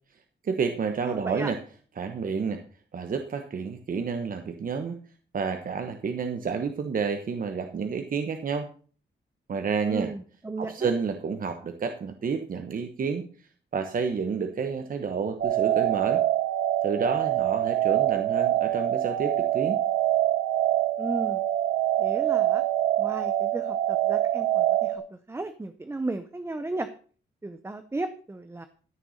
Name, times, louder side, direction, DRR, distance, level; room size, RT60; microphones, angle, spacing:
voice 1, 0.4-1.6 2.0-2.6 2.9-5.0 5.3-8.7 9.5-10.1 10.6-13.2 13.7-16.2 16.8-19.8, right 5 dB, 50° right, 6 dB, 1.2 m, -30 dB
voice 2, 1.0-1.5 9.9-10.9 21.0-21.4 22.0-22.6 23.0-25.0 25.3-26.9 27.4-28.7, right 2 dB, 15° right, 10 dB, 0.7 m, -35 dB
sound 1, 15.4-25.0, right 12 dB, 85° right, 2.7 m, -25 dB
14.0 x 6.7 x 6.5 m, 0.42 s
wide cardioid pair, 165°, 18 cm